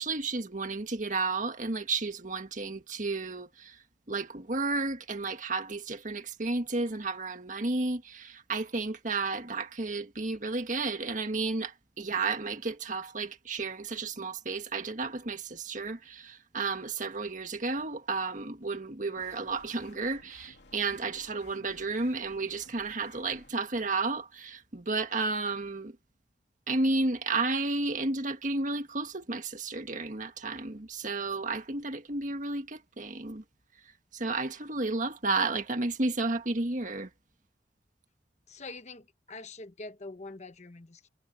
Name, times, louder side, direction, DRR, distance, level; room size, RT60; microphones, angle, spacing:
voice 1, 0.0-3.8 4.1-26.0 26.7-33.4 34.1-37.1, right 3 dB, 45° right, 1.7 m, -32 dB
sound 1, 19.2-23.5, left 2 dB, 65° left, 3.4 m, -56 dB
voice 2, 38.5-41.1, left 3 dB, 40° left, 1.0 m, -44 dB
head